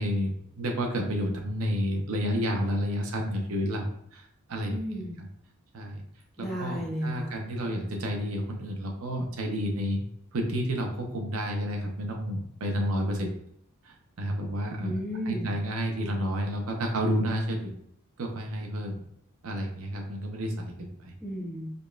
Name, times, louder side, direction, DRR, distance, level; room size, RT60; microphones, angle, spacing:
voice 1, 0.0-4.8 5.7-6.0 6.4-10.0 10.3-13.3 13.8-14.9 15.3-17.7 18.2-19.0 19.4-21.1, equal, 70° right, 2 dB, 0.6 m, -30 dB
voice 2, 4.7-5.2 6.4-7.3 14.8-15.5 21.2-21.7, equal, ahead, -7 dB, 1.0 m, -33 dB
5.0 x 2.3 x 2.2 m, 0.71 s
head